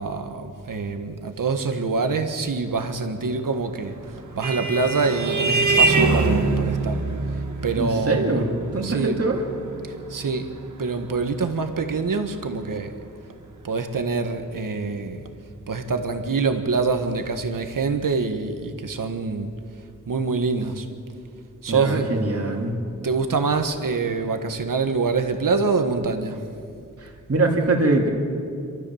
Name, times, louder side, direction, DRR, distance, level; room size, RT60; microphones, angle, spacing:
voice 1, 0.0-4.0 4.3-7.0 7.6-8.4 8.8-9.2 10.1-10.5 10.8-12.9 13.6-15.2 15.7-19.5 20.1-20.9 21.6-22.1 23.0-26.4, right 4 dB, 90° right, 6 dB, 1.6 m, -25 dB
Vehicle horn car horn honking, 3.8-12.8, right 3 dB, 65° right, 1.9 m, -25 dB
voice 2, 7.7-8.5 8.7-9.4 21.7-22.7 27.0-28.1, right 2 dB, 50° right, 0 dB, 2.8 m, -23 dB
27.5 x 13.0 x 7.3 m, 2.5 s
wide cardioid pair, 100°, 32 cm